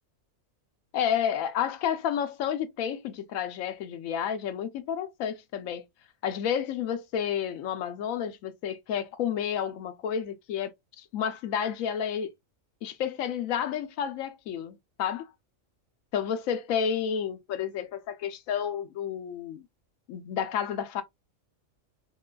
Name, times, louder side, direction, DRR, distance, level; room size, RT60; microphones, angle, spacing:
voice 1, 0.9-5.8 6.2-12.3 12.8-15.3 16.1-19.7 20.1-21.0, left 8 dB, 80° left, 1.0 m, -31 dB
3.7 x 2.3 x 2.2 m
omnidirectional pair, 1.4 m